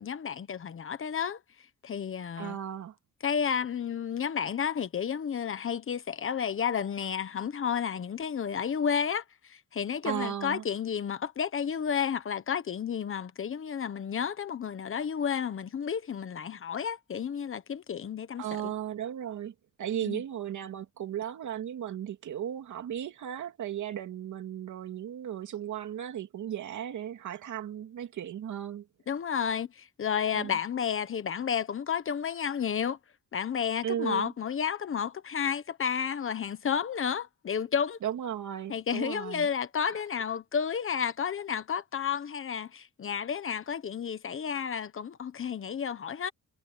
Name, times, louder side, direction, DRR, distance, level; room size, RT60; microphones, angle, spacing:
voice 1, 0.0-1.4 1.8-2.6 3.2-18.7 20.0-20.2 29.1-33.0 33.3-38.0 38.7-46.3, left 7 dB, 45° left, 1.3 m, -31 dB
voice 2, 2.4-2.9 10.0-10.6 18.4-28.8 30.3-30.6 33.8-34.3 38.0-39.5, right 10 dB, 70° right, 2.9 m, -36 dB
cardioid pair, 140°, 30 cm